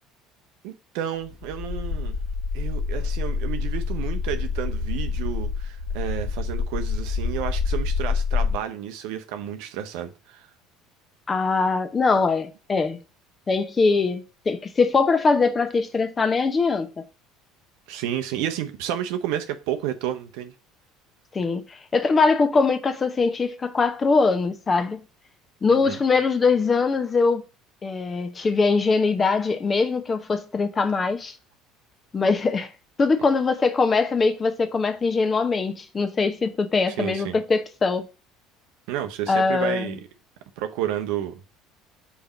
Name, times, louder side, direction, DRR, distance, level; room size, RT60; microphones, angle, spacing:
voice 1, 0.6-2.2 2.5-10.5 17.9-20.5 25.7-26.0 37.0-37.4 38.9-40.0 40.6-41.4, right 10 dB, 60° right, 0.7 m, -31 dB
sound 1, 1.2-8.5, left 5 dB, 55° left, 1.7 m, -27 dB
voice 2, 11.3-13.0 13.5-17.0 21.3-25.0 25.6-27.4 27.8-31.3 32.1-32.7 33.0-38.0 39.3-39.9, left 4 dB, 25° left, 0.9 m, -22 dB
5.3 x 4.5 x 5.1 m
figure-of-eight pair, 60°, 0 cm